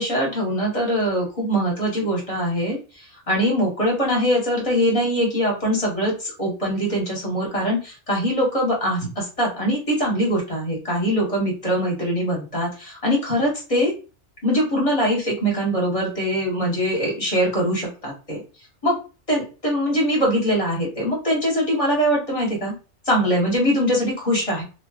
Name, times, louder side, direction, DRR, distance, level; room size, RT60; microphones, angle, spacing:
voice 1, 0.0-13.9 14.4-18.4 18.8-19.0 19.3-22.7 23.0-24.6, equal, 30° left, -3 dB, 1.3 m, -22 dB
3.1 x 2.8 x 2.3 m, 0.33 s
omnidirectional pair, 1.2 m